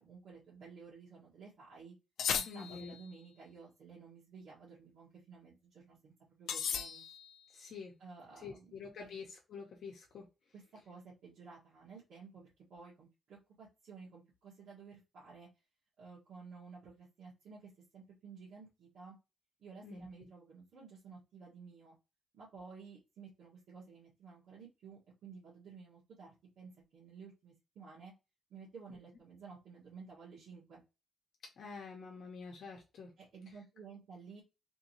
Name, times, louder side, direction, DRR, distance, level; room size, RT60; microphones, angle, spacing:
voice 1, 0.0-1.9 2.3-7.0 8.0-9.1 10.5-15.5 16.0-19.1 19.6-21.9 22.3-28.1 28.5-30.8 33.2-34.4, right 5 dB, 75° right, -8 dB, 1.6 m, -54 dB
sound 1, 2.2-3.1 6.5-7.4, left 7 dB, 85° left, 0.5 m, -36 dB
voice 2, 2.5-3.0 7.5-7.9 8.4-10.2 19.8-20.1 31.6-33.1, left 5 dB, 60° left, 0 dB, 0.8 m, -47 dB
3.6 x 2.8 x 2.9 m, 0.27 s
wide cardioid pair, 175°, 0 cm